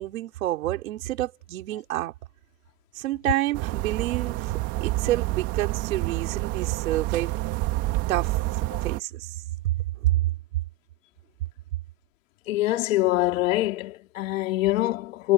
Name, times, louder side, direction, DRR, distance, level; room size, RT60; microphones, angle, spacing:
voice 1, 0.0-2.1 2.9-4.5 4.8-7.3 8.1-9.3 9.6-9.7 10.0-10.2, right 15 dB, 70° right, 3.7 m, -28 dB
sound 1, 3.5-9.0, right 18 dB, 35° right, 2.0 m, -28 dB
voice 2, 12.5-15.3, left 16 dB, 65° left, 3.9 m, -24 dB
supercardioid pair, 155°, 43 cm